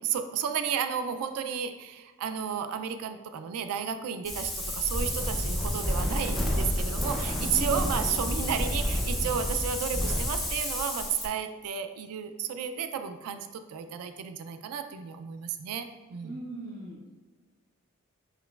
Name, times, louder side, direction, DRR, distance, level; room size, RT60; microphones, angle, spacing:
voice 1, 0.0-15.9 16.1-16.4, right 7 dB, 90° right, 8 dB, 0.3 m, -32 dB
Wind, 4.2-11.3, left 1 dB, ahead, 0.4 m, -30 dB
voice 2, 7.5-7.9 16.2-17.1, right 1 dB, 40° right, -6 dB, 0.6 m, -39 dB
5.8 x 3.0 x 2.3 m, 1.2 s
head